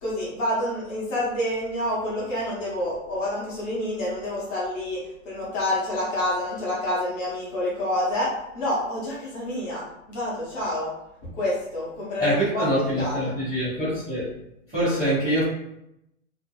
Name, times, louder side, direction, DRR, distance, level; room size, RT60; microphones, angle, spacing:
voice 1, 0.0-10.9 11.3-13.3, left 1 dB, 20° left, -6 dB, 0.7 m, -28 dB
voice 2, 12.2-14.3 14.7-15.4, equal, 5° right, -19 dB, 0.4 m, -24 dB
2.6 x 2.4 x 2.2 m, 0.81 s
hypercardioid pair, 140°, 42 cm